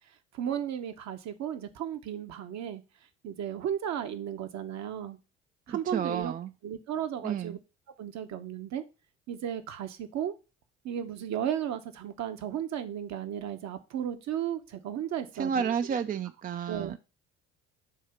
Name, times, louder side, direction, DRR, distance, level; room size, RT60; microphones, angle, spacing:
voice 1, 0.3-2.8 3.2-5.2 5.7-6.3 6.6-7.6 8.0-8.8 9.3-10.3 10.8-16.0 16.7-17.0, right 10 dB, 50° right, 1.0 m, -34 dB
voice 2, 5.7-6.5 7.2-7.6 15.4-17.0, right 7 dB, 25° right, 0.4 m, -31 dB
7.4 x 2.9 x 5.5 m
hypercardioid pair, 55°, 34 cm